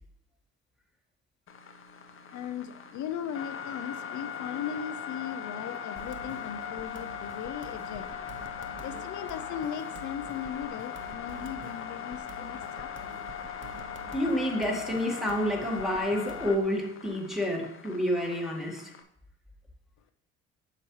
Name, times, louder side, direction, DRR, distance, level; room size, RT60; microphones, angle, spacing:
sound 1, 1.5-19.0, left 7 dB, 45° left, 0.8 m, -40 dB
voice 1, 2.3-13.2, left 9 dB, 70° left, 9 dB, 0.5 m, -38 dB
sound 2, 6.0-16.6, right 5 dB, 40° right, 0.8 m, -49 dB
voice 2, 14.1-18.9, equal, ahead, -1 dB, 1.7 m, -29 dB
7.7 x 5.8 x 3.1 m, 0.76 s
cardioid pair, 90°, 30 cm